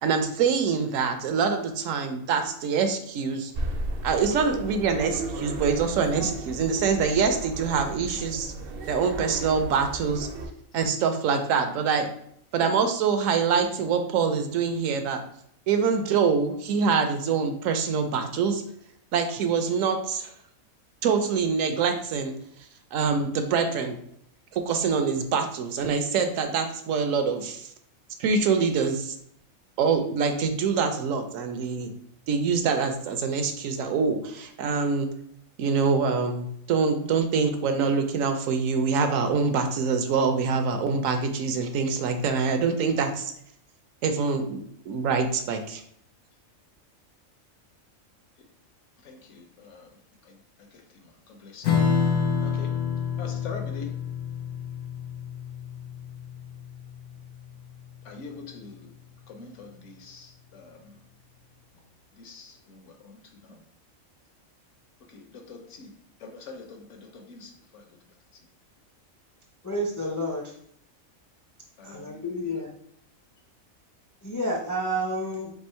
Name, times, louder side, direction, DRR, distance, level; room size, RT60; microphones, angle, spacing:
voice 1, 0.0-3.5 4.0-8.5 8.9-10.3 10.7-12.1 12.5-15.2 15.7-18.6 19.1-20.3 21.0-22.3 22.9-24.0 24.5-27.7 28.2-29.1 29.8-31.9 32.3-35.1 35.6-43.3 44.0-45.8, right 5 dB, 75° right, 7 dB, 1.0 m, -25 dB
sound 1, 3.5-10.5, right 2 dB, 60° right, 0.7 m, -35 dB
voice 2, 49.0-52.8 53.2-54.0 58.0-58.9 59.3-61.0 62.1-63.6 65.1-65.9 66.2-67.9 68.3-68.5 71.8-72.6, left 4 dB, 65° left, 4 dB, 1.0 m, -45 dB
Strum, 51.6-58.5, left 6 dB, 85° left, 1.1 m, -28 dB
voice 3, 69.6-70.5 71.8-72.7 74.2-75.5, equal, 30° left, -2 dB, 0.3 m, -30 dB
3.6 x 2.9 x 4.3 m, 0.68 s
omnidirectional pair, 1.4 m